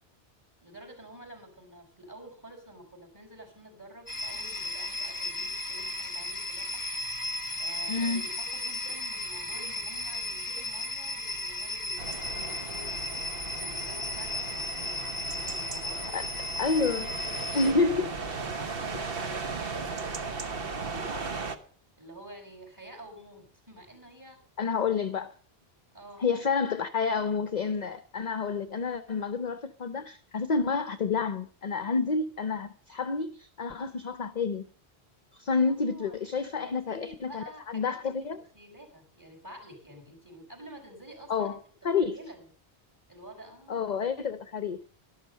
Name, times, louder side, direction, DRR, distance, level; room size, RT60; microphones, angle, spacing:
voice 1, 0.6-6.8 7.6-13.1 13.6-16.2 16.9-21.3 22.0-24.4 25.9-26.2 35.7-41.6 42.0-42.5 43.1-43.9, right 1 dB, 15° right, 5.3 m, -49 dB
sound 1, 4.1-17.7, left 2 dB, 20° left, 1.3 m, -35 dB
voice 2, 7.9-8.2 16.1-16.3 16.6-17.1 17.5-18.4 24.6-25.3 26.2-34.7 35.3-38.4 41.3-41.6 41.8-42.2 43.7-44.8, left 4 dB, 45° left, 0.7 m, -29 dB
sound 2, 12.0-21.6, right 4 dB, 60° right, 1.2 m, -37 dB
12.0 x 12.0 x 5.5 m
omnidirectional pair, 1.1 m